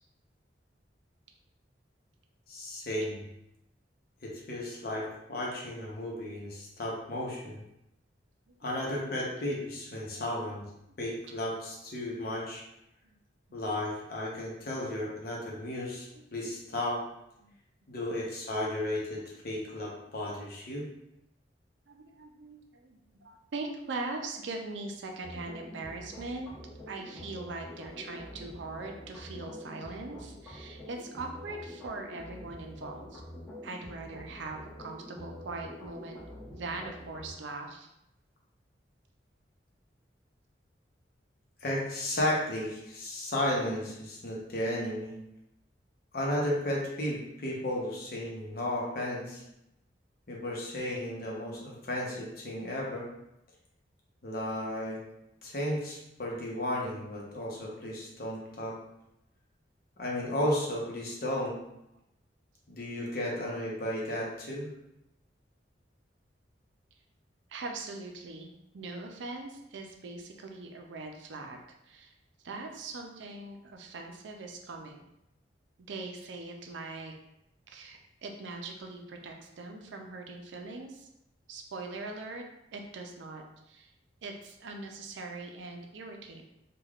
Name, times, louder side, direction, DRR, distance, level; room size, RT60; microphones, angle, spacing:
voice 1, 2.5-3.2 4.2-7.6 8.6-10.7 11.0-12.6 13.5-17.0 17.9-20.9 41.6-45.1 46.1-49.4 50.3-53.1 54.2-55.0 55.4-58.8 60.0-61.6 62.7-64.7, left 1 dB, 55° left, -3 dB, 0.7 m, -34 dB
voice 2, 21.9-26.5 26.9-33.2 33.6-36.2 36.5-37.9 67.5-71.6 71.9-72.1 72.4-75.0 75.9-77.1 77.7-81.1 81.5-82.4 82.7-83.9 84.2-86.4, right 3 dB, 85° right, 2 dB, 0.4 m, -41 dB
sound 1, 25.2-37.3, left 1 dB, ahead, 0.9 m, -46 dB
3.4 x 2.3 x 2.3 m, 0.84 s
head